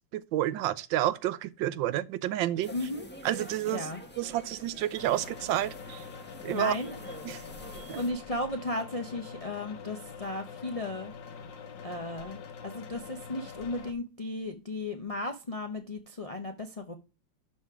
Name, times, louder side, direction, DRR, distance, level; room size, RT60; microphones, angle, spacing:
voice 1, 0.1-2.7 3.2-3.9 4.2-6.0 6.4-6.7 7.2-7.4 7.9-8.0, right 13 dB, 85° right, 1.3 m, -30 dB
sound 1, 2.6-8.1, equal, 5° left, 1.1 m, -46 dB
voice 2, 2.7-3.1 3.7-4.0 6.5-7.0 8.0-11.1 11.8-16.9, left 2 dB, 60° left, 0.3 m, -35 dB
sound 2, 5.0-13.9, left 6 dB, 75° left, 1.7 m, -45 dB
12.0 x 4.1 x 4.8 m
omnidirectional pair, 2.0 m